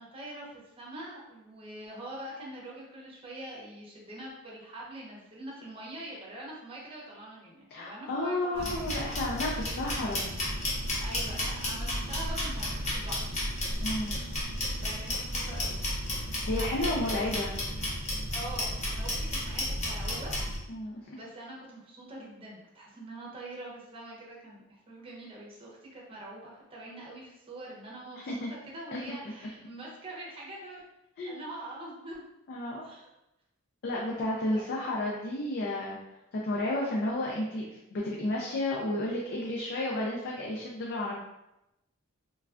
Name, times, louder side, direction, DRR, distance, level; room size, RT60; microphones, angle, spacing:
voice 1, 0.0-8.9 11.0-13.5 14.1-14.4 14.8-15.8 16.6-17.2 18.3-20.3 21.1-30.8 31.3-32.3 32.8-33.1 34.4-34.7, right 1 dB, 25° right, -4 dB, 0.7 m, -44 dB
voice 2, 7.7-10.3 13.8-14.2 16.4-17.5 20.7-21.2 28.3-28.5 28.9-29.0 31.2-31.5 32.5-32.8 33.8-36.0 36.4-41.2, left 1 dB, 50° left, -3 dB, 0.4 m, -32 dB
sound 1, 8.5-20.6, left 1 dB, 30° left, 0.7 m, -33 dB
3.2 x 2.3 x 2.4 m, 0.90 s
head